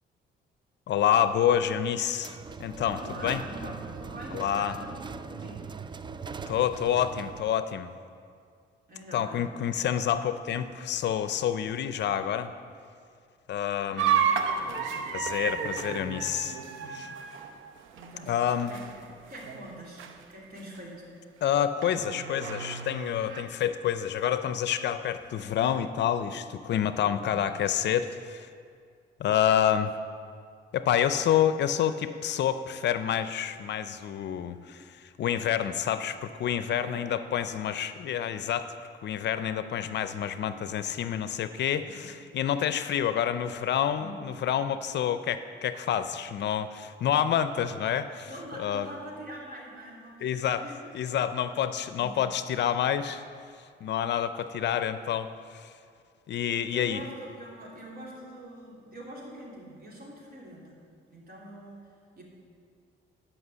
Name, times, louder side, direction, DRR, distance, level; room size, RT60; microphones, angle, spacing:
voice 1, 0.9-3.0 3.2-3.4 4.3-4.7 6.5-7.9 9.1-12.5 13.5-14.2 15.1-16.6 16.9-17.1 18.3-18.7 21.4-28.5 29.2-29.9 30.7-38.8 39.0-48.3 48.6-48.9 50.2-50.6 50.9-53.2 53.8-55.3 55.5-55.7 56.3-57.0, left 9 dB, 60° left, 11 dB, 0.5 m, -28 dB
sound 1, 2.1-7.6, right 5 dB, 25° right, 0.3 m, -41 dB
voice 2, 2.9-5.7 8.9-9.5 13.9-14.8 16.7-17.1 17.9-18.3 18.7-21.0 27.0-27.2 36.8-37.1 41.8-42.4 43.9-44.2 48.2-50.8 51.1-51.2 52.0-52.4 56.7-60.8 61.1-62.2, right 1 dB, 50° right, -3 dB, 3.0 m, -44 dB
sound 2, 14.0-19.1 19.3-19.7 20.0-20.1 20.8-20.9 21.8-23.4, right 7 dB, 85° right, 0.7 m, -31 dB
11.0 x 5.8 x 6.8 m, 2.2 s
cardioid pair, 90°, 20 cm